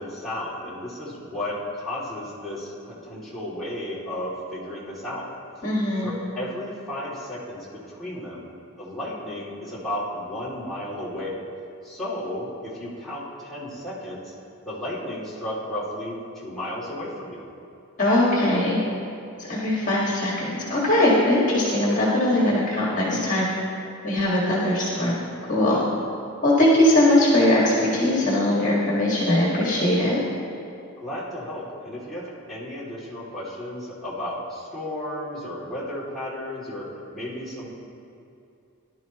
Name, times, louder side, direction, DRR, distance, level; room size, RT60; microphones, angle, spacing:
voice 1, 0.0-5.3 6.0-8.4 8.8-11.4 11.8-14.3 14.7-17.4 25.6-26.0 31.0-37.7, left 1 dB, ahead, -9 dB, 2.7 m, -33 dB
voice 2, 5.6-6.2 18.0-18.8 19.5-23.5 24.0-25.2 25.5-25.8 26.4-30.2, left 1 dB, 35° left, -5 dB, 1.9 m, -20 dB
18.5 x 11.5 x 3.1 m, 2.6 s
head